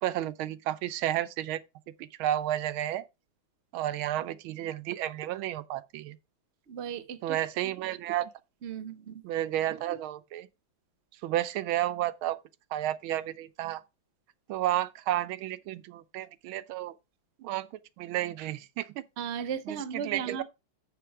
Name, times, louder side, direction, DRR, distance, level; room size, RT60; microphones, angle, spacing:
voice 1, 0.0-1.6 2.0-3.0 3.7-6.2 7.2-8.3 9.2-10.5 11.2-12.4 12.7-13.8 14.5-16.9 17.4-17.7 18.0-19.0 19.7-20.4, right 13 dB, 90° right, 1.5 m, -31 dB
voice 2, 6.7-7.4 7.6-7.7 8.6-9.2 19.2-20.4, right 7 dB, 50° right, 0.8 m, -36 dB
6.8 x 6.5 x 4.7 m
omnidirectional pair, 2.2 m